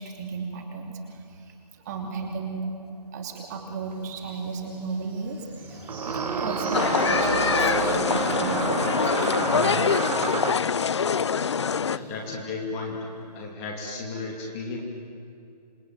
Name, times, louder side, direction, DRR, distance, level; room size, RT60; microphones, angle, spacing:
voice 1, 0.0-2.7 3.1-10.2 11.0-11.1, right 4 dB, 25° right, 2 dB, 3.0 m, -35 dB
sound 1, 3.9-4.0 5.9-10.7, right 6 dB, 65° right, 0.6 m, -29 dB
sound 2, 4.2-11.0 11.2-11.4 11.7-12.0, right 2 dB, 10° right, 3.5 m, -40 dB
sound 3, 6.7-12.0, left 6 dB, 45° left, 0.5 m, -24 dB
voice 2, 11.8-13.1 13.3-14.8, left 3 dB, 15° left, 0 dB, 2.6 m, -34 dB
27.5 x 22.0 x 9.2 m, 2.6 s
figure-of-eight pair, 160°, 21 cm